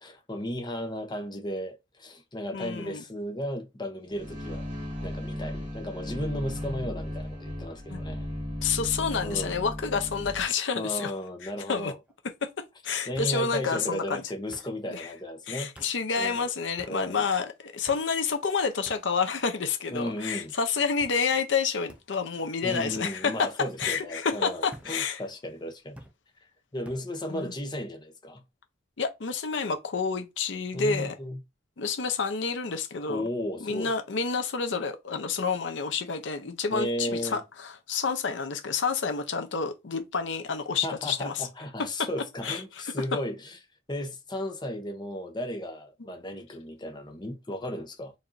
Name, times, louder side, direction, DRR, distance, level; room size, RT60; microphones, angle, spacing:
voice 1, 0.0-4.7 5.0-8.3 9.2-9.6 10.7-12.0 13.1-15.7 16.2-16.4 16.9-17.3 19.9-20.5 22.6-26.0 26.7-28.4 30.7-31.4 33.1-33.9 36.7-37.4 40.8-43.6 43.9-48.1, equal, 25° left, 0.8 m, -35 dB
voice 2, 2.5-3.0 7.9-8.0 8.6-11.1 11.7-11.9 12.4-12.5 12.8-14.2 14.9-15.1 15.5-23.5 23.8-25.2 27.3-27.5 29.0-31.1 31.8-33.2 33.6-41.5 42.0-42.1 42.4-42.6, left 5 dB, 70° left, 0.7 m, -29 dB
sound 1, 4.1-10.4, left 1 dB, 50° right, 2.0 m, -36 dB
sound 2, 10.5-11.0 12.1-12.2 13.1-13.4 14.5-14.7 15.8-15.9 16.8-17.0 17.9-18.1 18.9-19.0 19.8-20.2 21.0-21.2 21.9-22.0 22.9-23.1 23.8-24.0 24.7-24.9 26.0-26.2 26.8-27.0, equal, 5° right, 0.5 m, -48 dB
4.7 x 2.7 x 2.6 m
head